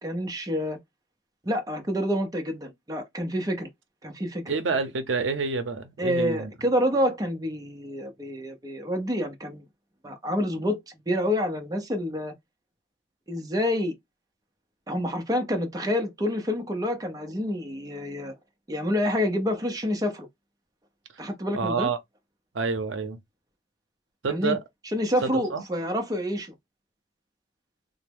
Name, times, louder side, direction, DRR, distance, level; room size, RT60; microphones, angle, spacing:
voice 1, 0.0-0.8 1.4-3.7 4.0-4.4 6.0-9.6 10.0-10.8 11.1-12.3 13.3-13.9 14.9-18.4 18.7-20.3 21.2-21.9 24.3-24.6 24.9-26.5, equal, 20° right, 0.6 m, -28 dB
voice 2, 4.5-6.5 21.5-22.0 22.5-23.2 24.2-24.6 25.2-25.6, right 4 dB, 80° right, 0.6 m, -28 dB
3.4 x 2.0 x 3.3 m
head